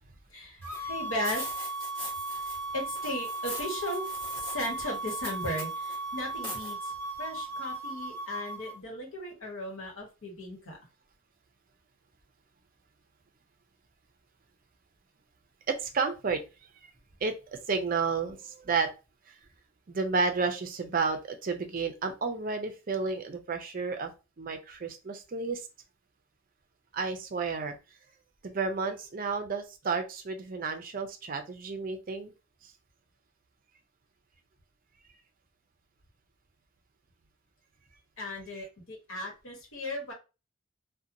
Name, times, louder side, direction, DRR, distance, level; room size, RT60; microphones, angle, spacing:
voice 1, 0.3-1.7 2.7-4.0 4.4-6.9 7.2-10.8 38.2-40.1, left 1 dB, 75° left, 0 dB, 1.1 m, -36 dB
sound 1, 0.6-8.8, right 2 dB, 10° left, 0.9 m, -37 dB
sound 2, 0.7-0.8 1.2-2.7 2.9-6.0 6.4-6.7, left 1 dB, 25° left, 1.3 m, -42 dB
voice 2, 15.7-16.4 17.2-18.9 19.9-24.1 24.4-25.6 26.9-27.7 28.4-32.3 38.5-38.7, right 4 dB, 40° right, 6 dB, 0.4 m, -31 dB
2.8 x 2.1 x 2.5 m, 0.30 s
head